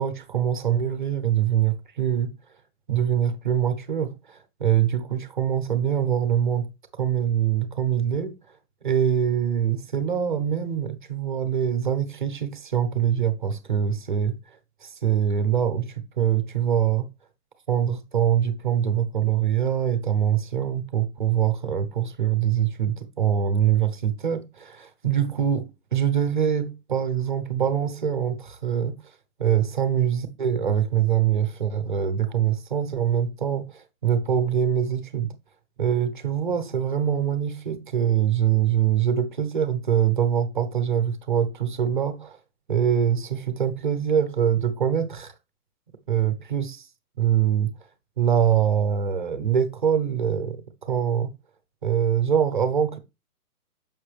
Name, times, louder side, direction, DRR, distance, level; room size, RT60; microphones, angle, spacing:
voice 1, 0.0-2.3 2.9-6.7 7.0-8.4 8.8-17.1 17.7-29.0 29.4-35.3 35.8-42.4 42.7-45.3 46.1-46.9 47.2-47.7 48.2-51.3 51.8-53.0, right 9 dB, 30° right, 0.9 m, -24 dB
7.3 x 5.6 x 3.3 m
hypercardioid pair, 175°, 46 cm